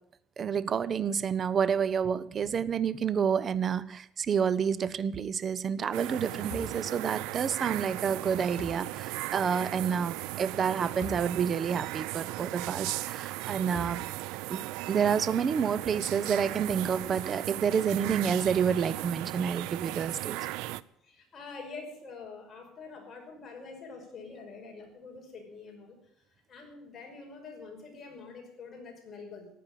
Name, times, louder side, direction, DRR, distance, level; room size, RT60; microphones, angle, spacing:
voice 1, 0.4-14.0 14.5-20.4, right 7 dB, 35° right, 17 dB, 0.8 m, -29 dB
sound 1, 5.9-20.8, right 18 dB, 85° right, 0.5 m, -37 dB
sound 2, 6.5-6.8 8.6-8.9 11.0-11.3 11.9-12.0 13.7-14.2, left 5 dB, 75° left, 2.5 m, -42 dB
voice 2, 21.0-26.0 26.5-29.5, left 4 dB, 30° left, 1 dB, 5.4 m, -46 dB
15.5 x 9.5 x 9.1 m, 0.74 s
cardioid pair, 145°, 0 cm